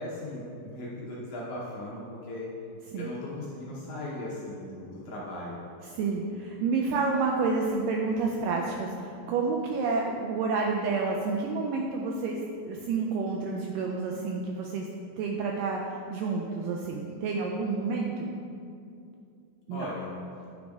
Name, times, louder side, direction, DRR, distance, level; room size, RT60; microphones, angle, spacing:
voice 1, 0.0-2.5 2.9-5.6 19.7-20.1, left 1 dB, 70° left, -6 dB, 2.0 m, -38 dB
voice 2, 5.9-12.4 12.6-14.9 15.2-15.8 16.1-18.3 19.7-19.9, right 4 dB, 85° right, 0 dB, 1.9 m, -29 dB
8.8 x 5.0 x 3.5 m, 2.5 s
omnidirectional pair, 4.3 m